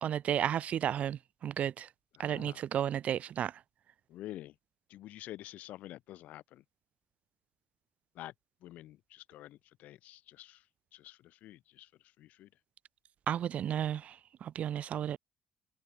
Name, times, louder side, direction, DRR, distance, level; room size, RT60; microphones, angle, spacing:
voice 1, 0.0-1.9 2.2-3.6 13.3-15.2, right 10 dB, 60° right, 0.7 m, -33 dB
voice 2, 2.2-2.6 4.1-4.5 4.9-6.6 8.1-8.3 8.6-10.6 10.9-11.9 12.2-12.5, left 14 dB, 80° left, 2.3 m, -48 dB
supercardioid pair, 75°, 3 cm